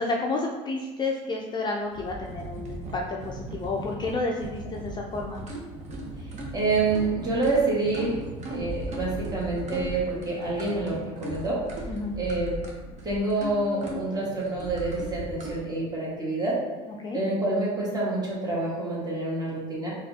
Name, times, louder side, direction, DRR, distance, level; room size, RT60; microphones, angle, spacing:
voice 1, 0.0-5.4 11.9-12.2 17.0-17.2, left 3 dB, 25° left, 0 dB, 0.4 m, -30 dB
sound 1, 1.9-15.5, right 2 dB, 45° right, 0.9 m, -37 dB
voice 2, 6.5-8.2 8.5-11.7 12.2-12.6 13.0-16.6 17.1-19.9, right 2 dB, 25° right, -6 dB, 1.5 m, -27 dB
4.2 x 2.4 x 2.7 m, 1.2 s
supercardioid pair, 90°, 16 cm